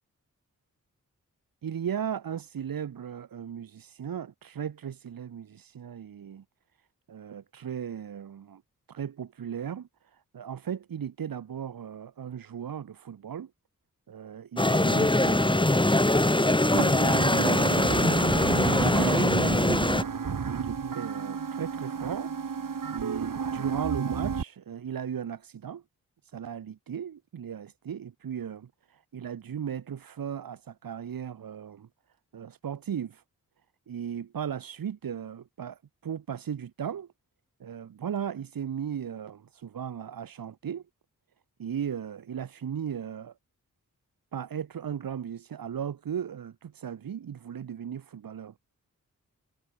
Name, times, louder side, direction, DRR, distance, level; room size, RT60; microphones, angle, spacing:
voice 1, 1.6-6.4 7.1-8.6 8.9-13.5 14.1-15.9 16.3-17.7 18.8-19.9 20.5-22.3 22.9-25.8 26.3-31.9 32.3-33.2 33.9-37.1 37.6-40.8 41.6-43.3 44.3-48.5, right 8 dB, 90° right, 4.3 m, -36 dB
sound 1, 14.6-20.0, left 1 dB, 15° left, 2.9 m, -22 dB
sound 2, 16.7-24.4, right 6 dB, 70° right, 7.9 m, -32 dB
cardioid pair, 50°, 34 cm